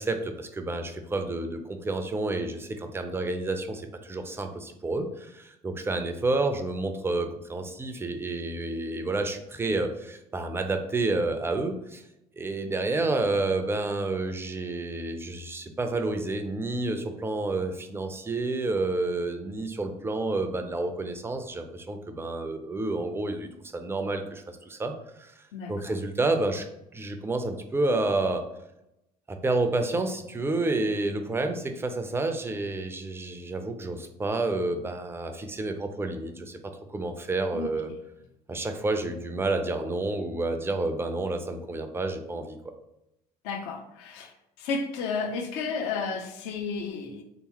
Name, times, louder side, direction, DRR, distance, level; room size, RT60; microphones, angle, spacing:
voice 1, 0.0-12.0 12.4-24.9 25.2-26.7 26.9-28.5 29.3-37.9 38.5-42.6, right 2 dB, 10° right, 6 dB, 0.5 m, -29 dB
voice 2, 25.5-25.9 37.5-38.0 43.4-44.3 44.6-47.2, left 4 dB, 60° left, 4 dB, 0.6 m, -32 dB
3.4 x 3.0 x 2.9 m, 0.86 s
figure-of-eight pair, 60°, 20 cm